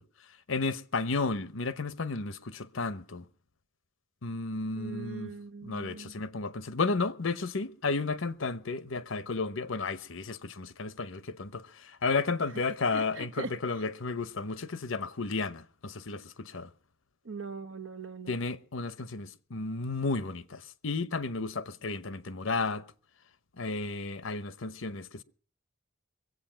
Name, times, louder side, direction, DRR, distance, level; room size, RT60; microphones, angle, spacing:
voice 1, 0.5-3.2 4.2-5.3 5.6-16.7 18.3-22.8 23.6-25.2, left 3 dB, 65° left, 0.9 m, -33 dB
voice 2, 4.8-6.1 12.9-13.5 17.2-18.4, right 3 dB, 60° right, 1.1 m, -41 dB
23.0 x 8.3 x 5.7 m
head